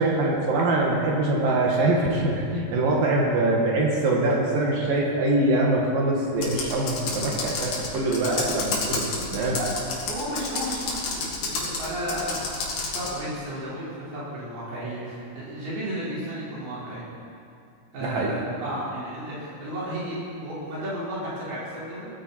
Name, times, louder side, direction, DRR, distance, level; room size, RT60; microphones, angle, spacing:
voice 1, 0.0-9.6 18.0-18.3, right 2 dB, 70° right, -1 dB, 3.4 m, -23 dB
Computer keyboard, 6.4-13.2, left 3 dB, 75° left, 3.9 m, -30 dB
voice 2, 8.0-8.9 9.4-9.7 10.1-17.1 17.9-22.1, right 1 dB, 85° right, -9 dB, 6.9 m, -33 dB
18.0 x 14.5 x 4.5 m, 2.5 s
omnidirectional pair, 4.3 m